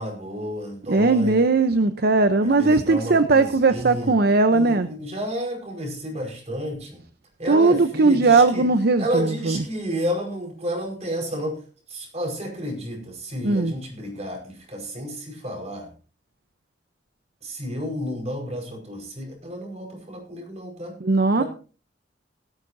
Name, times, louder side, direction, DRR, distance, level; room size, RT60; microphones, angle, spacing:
voice 1, 0.0-1.4 2.4-4.1 4.5-7.0 7.4-8.7 9.0-11.6 11.9-15.9 17.4-20.9 21.4-21.5, equal, 35° right, 2 dB, 5.0 m, -31 dB
voice 2, 0.9-4.9 7.5-9.6 13.4-13.7 21.0-21.4, right 3 dB, 55° right, 10 dB, 0.7 m, -19 dB
17.5 x 13.5 x 2.7 m, 0.37 s
head